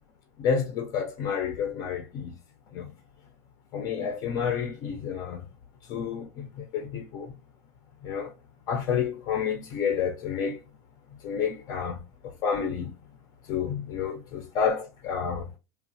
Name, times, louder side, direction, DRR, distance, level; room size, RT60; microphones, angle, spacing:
voice 1, 0.4-2.3 2.7-2.9 3.7-5.5 5.9-7.3 8.0-8.3 8.7-10.6 11.2-13.0 13.5-15.5, left 7 dB, 50° left, 0.5 m, -30 dB
3.0 x 2.0 x 2.6 m
supercardioid pair, 135°, 8 cm